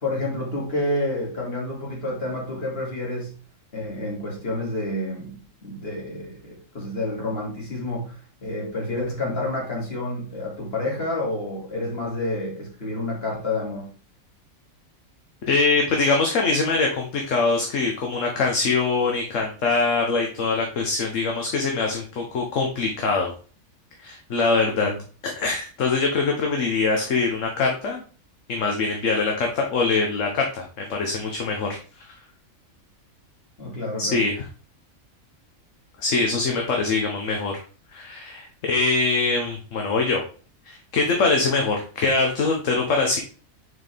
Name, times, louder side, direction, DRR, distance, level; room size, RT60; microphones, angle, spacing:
voice 1, 0.0-3.3 3.7-13.9 24.7-25.0 33.6-34.2, left 2 dB, 45° left, -3 dB, 2.6 m, -29 dB
voice 2, 15.4-23.3 24.0-24.9 25.2-28.0 28.5-30.6 30.9-32.1 34.0-34.4 36.0-37.6 37.9-40.2 40.7-43.2, left 3 dB, 65° left, 1 dB, 1.3 m, -23 dB
6.6 x 4.4 x 3.4 m, 0.39 s
omnidirectional pair, 1.4 m